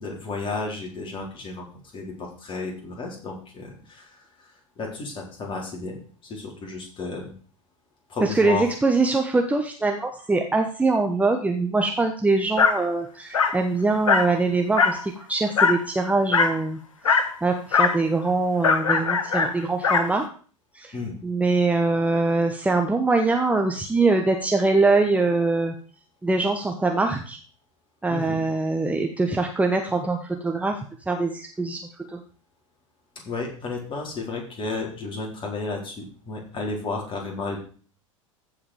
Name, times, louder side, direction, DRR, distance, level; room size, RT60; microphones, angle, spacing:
voice 1, 0.0-1.7 1.9-6.0 6.2-7.3 8.1-8.7 20.9-21.2 28.1-28.4 33.3-37.6, left 3 dB, 30° left, 0 dB, 3.9 m, -32 dB
voice 2, 8.2-16.8 17.4-20.3 20.7-21.0 21.2-25.7 26.2-27.4 28.0-30.8 31.1-32.2, right 3 dB, 10° right, 3 dB, 1.0 m, -23 dB
Dog, 12.6-12.8 13.3-13.6 14.1-14.3 14.8-15.0 15.6-15.8 16.3-16.6 17.0-17.3 17.7-18.0 18.6-20.1, left 5 dB, 75° left, 1.1 m, -20 dB
14.5 x 5.0 x 4.9 m, 0.42 s
figure-of-eight pair, 85°, 17 cm